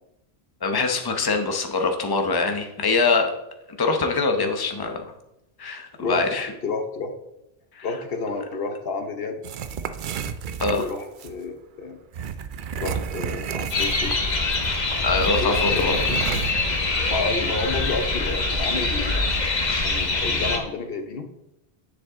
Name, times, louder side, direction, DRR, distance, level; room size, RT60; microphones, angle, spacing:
voice 1, 0.6-3.3 3.7-5.0 5.6-6.5 7.8-7.9 10.6-10.9 15.0-15.9, left 4 dB, 25° left, 5 dB, 0.9 m, -23 dB
voice 2, 6.6-7.1 7.8-9.4 10.7-12.0 12.8-14.1 15.4-16.2 17.0-19.3 19.8-21.3, left 3 dB, 65° left, 6 dB, 1.0 m, -30 dB
sound 1, 9.4-11.3 12.1-14.3 14.5-14.7 15.1-16.5, right 7 dB, 60° right, 0.7 m, -31 dB
sound 2, 13.7-20.6, left 3 dB, 45° left, 1.3 m, -24 dB
9.7 x 7.5 x 3.7 m, 0.87 s
omnidirectional pair, 1.1 m